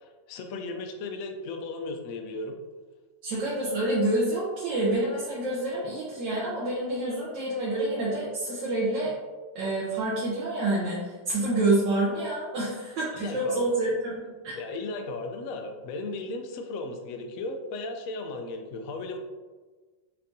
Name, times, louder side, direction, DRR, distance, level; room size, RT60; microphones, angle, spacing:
voice 1, 0.0-2.6 13.1-13.6 14.5-19.2, left 2 dB, 70° left, 5 dB, 0.8 m, -36 dB
voice 2, 3.2-9.1 9.5-14.5, right 2 dB, 75° right, -7 dB, 1.5 m, -28 dB
5.8 x 3.4 x 2.6 m, 1.3 s
omnidirectional pair, 2.0 m